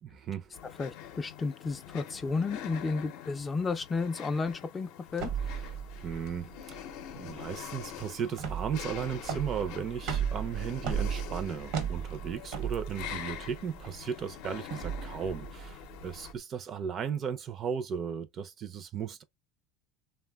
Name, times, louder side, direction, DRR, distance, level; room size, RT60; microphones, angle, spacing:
sound 1, 0.5-16.3, left 10 dB, 70° left, 0.6 m, -45 dB
voice 1, 0.8-5.3, left 4 dB, 20° left, 0.3 m, -32 dB
sound 2, 5.1-16.4, right 8 dB, 65° right, 0.8 m, -36 dB
voice 2, 6.0-6.8 7.2-19.2, right 7 dB, 40° right, 0.4 m, -36 dB
3.1 x 2.1 x 2.2 m
supercardioid pair, 120°, 0 cm